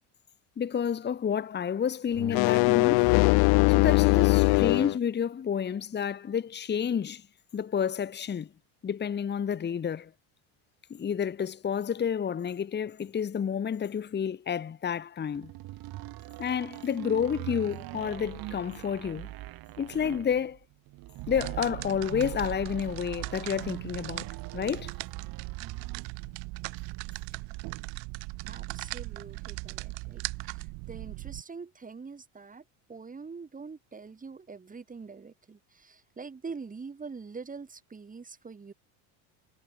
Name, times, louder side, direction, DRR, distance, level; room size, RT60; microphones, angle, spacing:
voice 1, 0.6-3.1 3.7-7.2 7.5-8.5 8.8-10.1 10.9-15.5 16.4-19.3 19.8-20.6 21.3-24.3 24.5-24.9, left 8 dB, 20° left, 1.6 m, -30 dB
sound 1, 2.2-5.0, left 29 dB, 55° left, 0.5 m, -21 dB
sound 2, 15.3-26.1, right 17 dB, 50° right, 1.7 m, -42 dB
sound 3, 21.2-31.4, right 26 dB, 65° right, 3.4 m, -39 dB
voice 2, 28.4-32.6 32.9-38.7, right 4 dB, 15° right, 4.4 m, -44 dB
cardioid pair, 140°, 46 cm